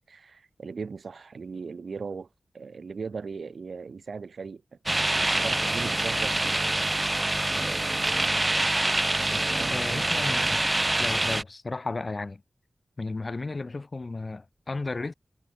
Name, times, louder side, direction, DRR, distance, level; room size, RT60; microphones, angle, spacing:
voice 1, 0.1-2.3 2.5-6.6 9.1-10.1, right 5 dB, 80° right, 1.5 m, -38 dB
sound 1, 4.9-11.4, right 2 dB, 30° right, 0.6 m, -25 dB
voice 2, 9.7-10.6 11.0-12.4 13.0-15.1, left 3 dB, 55° left, 1.5 m, -34 dB
cardioid pair, 45°, 0 cm